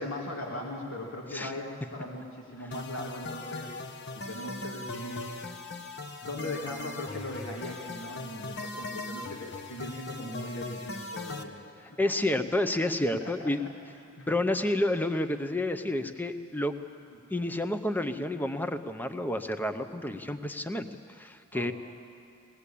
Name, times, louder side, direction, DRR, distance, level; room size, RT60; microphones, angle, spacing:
voice 1, 0.0-3.8 4.1-5.4 6.2-11.6 13.2-13.5 14.2-14.3 21.5-21.7, left 1 dB, 75° left, -1 dB, 2.3 m, -39 dB
sound 1, 2.7-11.4, left 2 dB, 55° left, 1.1 m, -40 dB
voice 2, 12.0-13.6 14.3-16.7 17.3-21.7, left 1 dB, 10° left, 9 dB, 0.7 m, -30 dB
20.0 x 18.5 x 8.5 m, 2.3 s
head